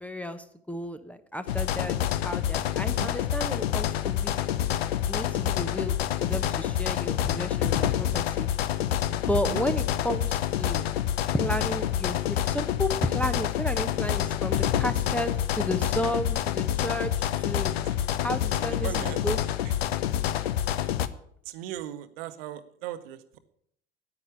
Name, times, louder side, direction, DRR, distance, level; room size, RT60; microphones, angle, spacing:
voice 1, 0.0-2.0 2.2-4.4 5.1-8.5 9.1-10.8 11.3-17.7 18.2-19.4, equal, 5° left, 11 dB, 1.0 m, -32 dB
sound 1, 1.5-21.1, left 11 dB, 70° left, 0.8 m, -27 dB
voice 2, 2.7-3.1 9.5-9.6 17.8-18.0 18.6-19.2 19.6-19.7 21.4-23.4, right 12 dB, 60° right, 12 dB, 1.1 m, -38 dB
9.8 x 9.6 x 8.5 m, 0.70 s
figure-of-eight pair, 65°, 32 cm